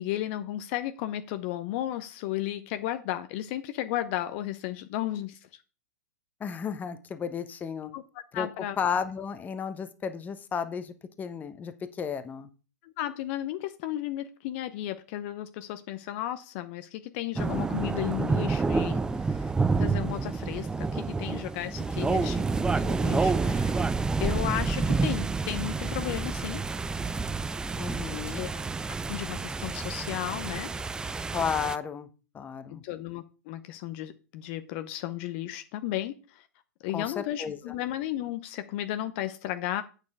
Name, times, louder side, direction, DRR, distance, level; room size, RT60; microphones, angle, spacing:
voice 1, 0.0-5.5 7.9-8.0 8.3-8.8 12.8-22.5 22.8-23.8 24.2-26.6 28.1-28.5 29.1-31.2 32.7-36.5 36.8-39.8, left 13 dB, 45° left, 10 dB, 0.8 m, -34 dB
voice 2, 6.4-7.9 8.3-8.5 8.8-12.5 22.1-22.4 27.8-28.5 31.3-32.1 32.3-32.8 36.9-37.7, left 7 dB, 20° left, 11 dB, 1.0 m, -33 dB
sound 1, 17.4-31.8, right 4 dB, 10° right, 0.4 m, -29 dB
8.5 x 6.7 x 4.8 m, 0.34 s
figure-of-eight pair, 105°, 9 cm